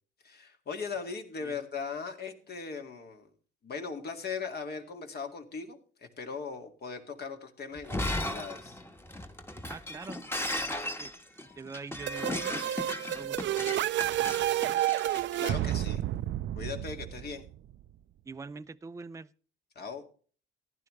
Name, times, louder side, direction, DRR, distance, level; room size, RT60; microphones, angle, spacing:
voice 1, 0.2-3.3 3.6-8.8 15.4-16.0 16.6-17.4 19.8-20.0, left 5 dB, 55° left, 2.1 m, -39 dB
Shatter, 7.8-15.8, left 1 dB, 10° left, 1.3 m, -36 dB
voice 2, 9.6-10.2 10.6-11.1 11.6-12.6 13.1-13.8 14.2-14.7 18.3-19.3, right 4 dB, 15° right, 0.5 m, -44 dB
sound 1, 12.1-17.7, right 13 dB, 70° right, 0.5 m, -30 dB
15.0 x 10.5 x 3.2 m
cardioid pair, 90°, 20 cm